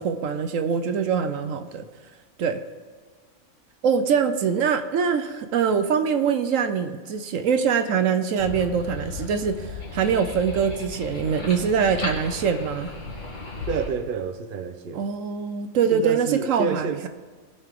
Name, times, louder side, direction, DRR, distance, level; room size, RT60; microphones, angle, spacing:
voice 1, 0.0-1.8 2.4-2.6 3.8-12.9 14.9-17.1, right 6 dB, 70° right, 8 dB, 1.1 m, -23 dB
sound 1, 8.4-13.9, left 3 dB, 60° left, 2.7 m, -35 dB
voice 2, 13.7-15.0 15.9-17.1, right 5 dB, 45° right, 8 dB, 0.8 m, -28 dB
19.0 x 6.9 x 3.7 m, 1.5 s
omnidirectional pair, 1.4 m